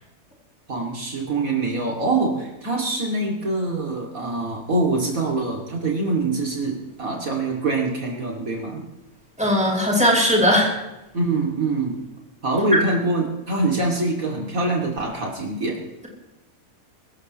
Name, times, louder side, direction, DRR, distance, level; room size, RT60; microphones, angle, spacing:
voice 1, 0.7-8.8 11.1-12.0 12.4-15.8, right 2 dB, 65° right, -1 dB, 3.1 m, -24 dB
voice 2, 9.4-10.7 12.7-12.8, equal, 5° right, -3 dB, 5.8 m, -18 dB
24.5 x 14.0 x 3.2 m, 0.98 s
omnidirectional pair, 1.5 m